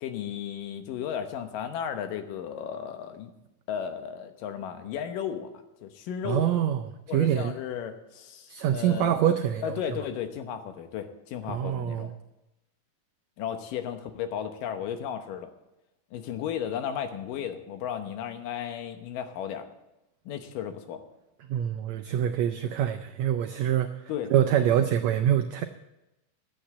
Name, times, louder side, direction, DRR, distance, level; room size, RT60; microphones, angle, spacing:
voice 1, 0.0-3.3 3.7-5.5 5.8-6.5 7.1-9.1 9.6-12.1 13.4-15.5 16.1-19.7 20.3-21.0 24.1-24.3, left 9 dB, 80° left, 8 dB, 2.6 m, -34 dB
voice 2, 6.2-6.8 7.1-7.5 8.5-9.7 11.5-12.1 21.5-24.0 24.3-25.6, right 10 dB, 90° right, 8 dB, 1.5 m, -25 dB
11.5 x 8.7 x 7.4 m, 0.94 s
omnidirectional pair, 3.9 m